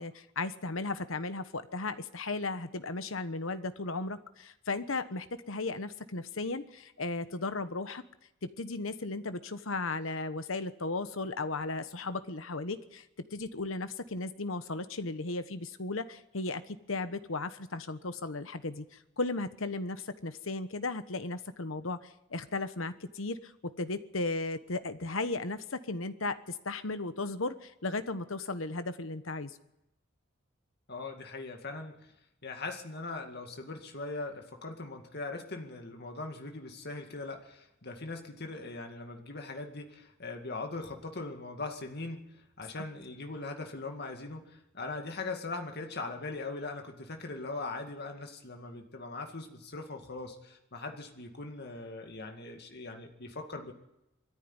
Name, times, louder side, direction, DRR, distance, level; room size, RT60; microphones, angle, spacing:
voice 1, 0.0-8.0 8.4-13.0 13.3-18.8 19.2-29.5 42.8-42.9, left 3 dB, 70° left, 11 dB, 1.2 m, -35 dB
voice 2, 30.9-32.0 32.4-42.3 42.6-53.7, left 3 dB, 50° left, 4 dB, 2.2 m, -40 dB
21.0 x 14.0 x 9.8 m, 0.90 s
head